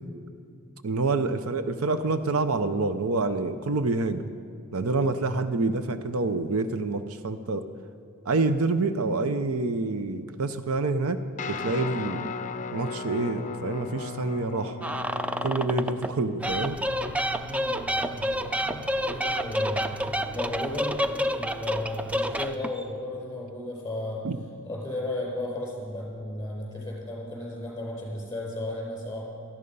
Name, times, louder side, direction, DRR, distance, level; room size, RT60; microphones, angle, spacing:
voice 1, 0.8-4.3 4.7-7.7 8.3-11.2 11.5-12.3 12.7-14.8 15.4-16.8 24.2-24.4, right 3 dB, 70° right, 10 dB, 0.7 m, -27 dB
voice 2, 5.0-5.4 17.4-19.9 20.3-24.2 24.6-29.4, left 1 dB, 15° left, -2 dB, 4.7 m, -35 dB
Guitar, 11.4-20.8, left 4 dB, 35° left, 0.6 m, -38 dB
sound 1, 14.8-16.1 16.4-22.8, equal, 5° right, 0.4 m, -29 dB
17.5 x 13.5 x 5.4 m, 2.4 s
head